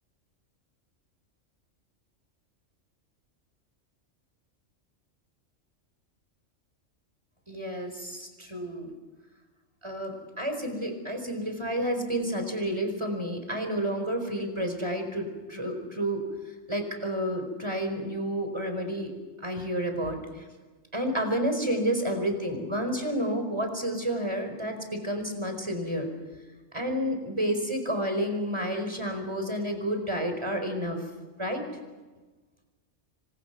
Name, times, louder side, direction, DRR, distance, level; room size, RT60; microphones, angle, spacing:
voice 1, 7.5-8.9 9.8-16.2 16.7-19.1 19.4-20.4 20.9-26.1 26.7-31.0 31.4-31.7, equal, 20° right, 5 dB, 4.9 m, -30 dB
28.0 x 26.0 x 6.0 m, 1.2 s
omnidirectional pair, 1.3 m